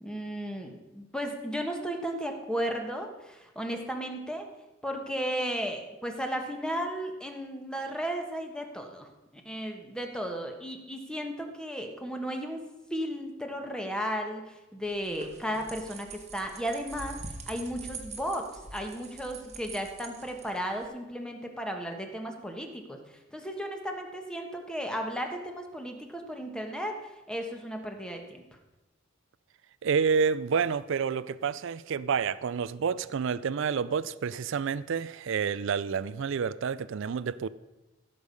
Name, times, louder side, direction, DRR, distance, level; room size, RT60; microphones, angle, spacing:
voice 1, 0.0-4.5 4.8-9.1 9.4-12.6 12.9-17.2 17.5-28.4, equal, 5° left, 1.4 m, -35 dB
sound 1, 14.8-20.9, right 4 dB, 35° right, 1.3 m, -44 dB
voice 2, 29.8-37.5, right 6 dB, 65° right, 0.4 m, -29 dB
15.5 x 6.7 x 5.4 m
head